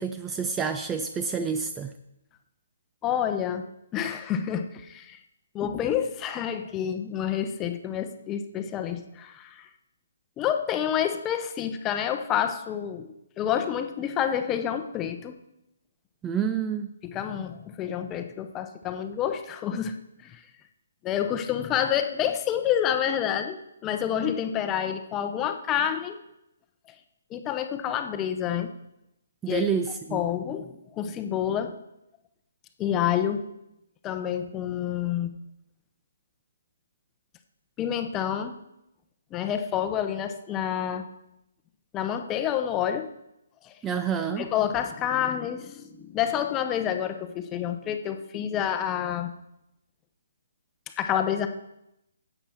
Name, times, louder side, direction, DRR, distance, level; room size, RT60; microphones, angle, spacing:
voice 1, 0.0-1.9 16.2-16.9 29.4-30.2 43.8-44.5, right 6 dB, 15° right, 10 dB, 0.5 m, -28 dB
voice 2, 3.0-3.6 3.9-5.2 5.5-9.7 10.4-15.3 17.0-20.4 21.0-26.2 27.3-28.7 29.4-29.6 30.1-31.8 32.8-33.4 34.0-35.3 37.8-38.5 39.3-41.1 41.9-43.1 43.6-43.7 44.4-49.3 51.0-51.5, left 9 dB, 20° left, 7 dB, 0.8 m, -28 dB
11.0 x 8.1 x 4.5 m, 0.85 s
figure-of-eight pair, 140°, 0 cm